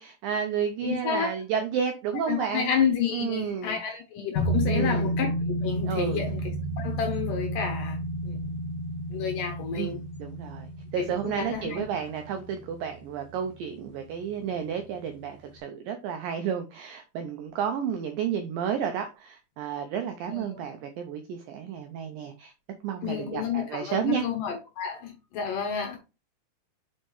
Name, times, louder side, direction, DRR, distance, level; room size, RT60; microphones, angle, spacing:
voice 1, 0.0-2.7 3.1-3.8 4.7-5.1 5.9-6.2 9.8-22.5 22.8-24.3, right 8 dB, 85° right, 2.0 m, -31 dB
voice 2, 0.8-1.3 2.3-6.4 6.8-8.0 8.2-8.4 9.1-10.0 11.0-11.8 20.3-20.6 23.0-26.0, left 7 dB, 70° left, 2.1 m, -30 dB
sound 1, 4.3-13.5 13.8-13.9, right 1 dB, 40° left, 1.6 m, -31 dB
6.4 x 5.2 x 3.1 m
omnidirectional pair, 4.8 m